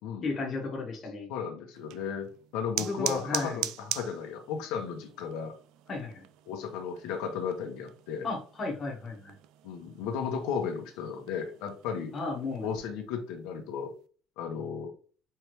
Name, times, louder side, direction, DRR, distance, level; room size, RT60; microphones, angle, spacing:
voice 1, 0.2-1.3 2.8-3.7 5.9-6.3 8.2-9.3 12.1-12.7, left 3 dB, 25° left, -1 dB, 1.2 m, -34 dB
voice 2, 1.3-5.5 6.5-8.3 9.6-12.1 12.6-13.9 14.4-14.9, left 6 dB, 80° left, 3 dB, 1.1 m, -34 dB
sound 1, 1.7-12.9, right 14 dB, 70° right, 0.3 m, -42 dB
4.6 x 3.4 x 3.0 m, 0.40 s
cardioid pair, 175°, 0 cm